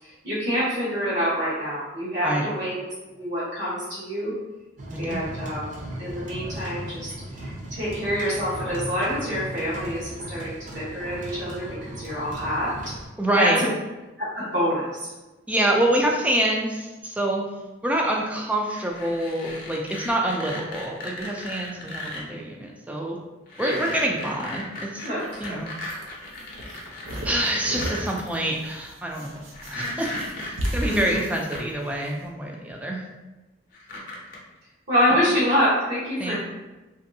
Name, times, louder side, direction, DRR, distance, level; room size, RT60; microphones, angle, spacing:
voice 1, 0.0-2.8 3.1-4.3 5.0-5.7 6.0-12.7 13.3-13.7 14.2-15.1 23.6-23.7 25.0-25.5 30.9-31.0 33.9-34.0 34.9-36.4, equal, 60° right, -10 dB, 1.0 m, -26 dB
sound 1, 4.8-13.1, right 1 dB, 40° right, 0.6 m, -37 dB
voice 2, 4.9-5.2 13.2-13.6 15.5-17.4 17.8-23.2 23.6-24.7 24.9-25.1 25.4-25.7 27.2-30.1 30.4-33.0 36.2-36.4, right 1 dB, 5° right, 0 dB, 0.3 m, -26 dB
sound 2, 18.6-22.2 23.5-28.0 29.5-31.6 32.7-32.8 33.7-34.4, left 1 dB, 45° left, 0.6 m, -36 dB
sound 3, 25.3-32.1, right 1 dB, 85° right, 0.6 m, -34 dB
3.0 x 2.6 x 2.6 m, 1.1 s
head